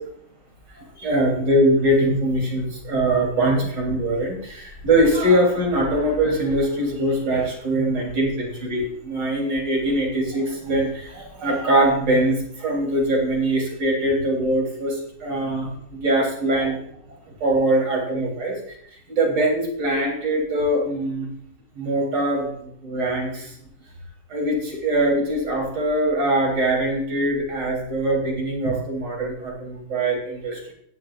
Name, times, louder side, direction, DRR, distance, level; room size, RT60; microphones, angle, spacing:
voice 1, 1.0-16.8 17.4-18.6 19.1-21.3 21.8-23.5 24.3-30.7, right 1 dB, 80° right, -1 dB, 4.0 m, -22 dB
16.0 x 12.0 x 2.4 m, 0.70 s
omnidirectional pair, 1.9 m